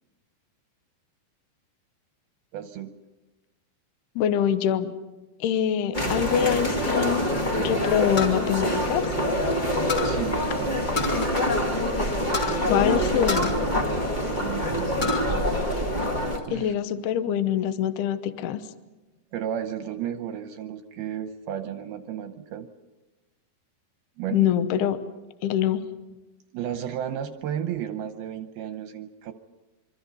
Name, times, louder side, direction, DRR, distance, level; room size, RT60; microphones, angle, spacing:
voice 1, 2.5-3.0 10.1-10.8 13.9-15.8 16.5-16.7 19.3-22.7 24.2-24.5 26.5-29.3, right 9 dB, 75° right, 7 dB, 2.5 m, -34 dB
voice 2, 4.2-4.9 5.4-7.3 7.6-9.1 12.7-13.6 16.5-18.6 24.3-25.0 25.4-25.8, left 9 dB, 75° left, 10 dB, 2.8 m, -24 dB
sound 1, 5.9-16.4, equal, 40° left, 0.6 m, -25 dB
sound 2, 8.2-9.5 9.9-10.2 11.0-11.6 11.8-11.9 12.3-12.6 13.3-14.4 14.8-15.3 15.7-16.5, left 4 dB, 20° left, 2.9 m, -30 dB
26.0 x 25.0 x 5.5 m, 1.1 s
omnidirectional pair, 5.0 m